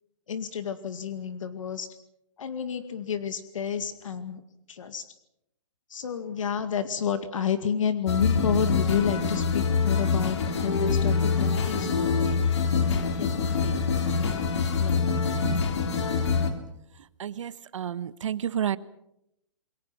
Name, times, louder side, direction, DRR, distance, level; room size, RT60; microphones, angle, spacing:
voice 1, 0.3-1.9 2.4-4.4 4.7-5.1 5.9-12.3 13.2-14.3 14.8-15.0, left 7 dB, 75° left, 10 dB, 2.2 m, -30 dB
sound 1, 8.1-16.5, left 5 dB, 60° left, 3.5 m, -25 dB
voice 2, 17.2-18.8, right 9 dB, 70° right, 16 dB, 1.2 m, -30 dB
28.0 x 22.0 x 6.1 m, 0.81 s
hypercardioid pair, 170°, 17 cm